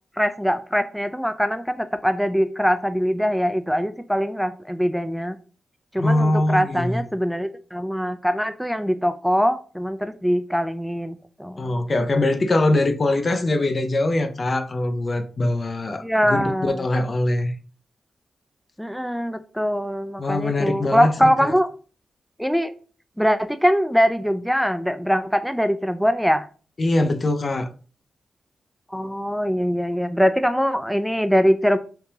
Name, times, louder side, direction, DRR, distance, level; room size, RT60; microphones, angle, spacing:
voice 1, 0.2-5.4 5.9-11.7 16.0-16.8 18.8-21.7 22.4-22.7 23.2-26.5 28.9-31.8, equal, ahead, 0.3 m, -22 dB
voice 2, 6.0-7.0 11.6-17.5 20.2-21.5 26.8-27.7, left 2 dB, 45° left, 0.6 m, -22 dB
3.6 x 2.8 x 2.8 m
cardioid pair, 50°, 0 cm